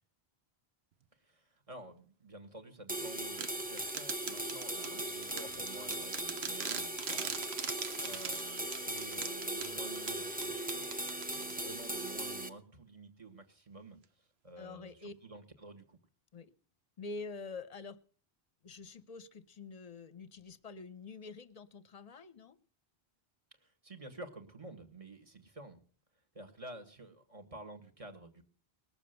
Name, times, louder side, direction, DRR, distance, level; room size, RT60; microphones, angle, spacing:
voice 1, 1.2-7.3 8.0-10.9 11.3-16.0 23.6-25.8 26.3-28.4, right 2 dB, 35° right, 7 dB, 1.7 m, -51 dB
sound 1, 2.9-12.5, right 1 dB, 10° right, 0.9 m, -39 dB
sound 2, 3.4-11.8, right 7 dB, 80° right, 1.1 m, -42 dB
voice 2, 14.6-15.1 16.3-16.5 17.0-18.0 18.6-22.6, left 3 dB, 40° left, 14 dB, 0.8 m, -46 dB
19.5 x 7.0 x 6.7 m, 0.43 s
omnidirectional pair, 1.0 m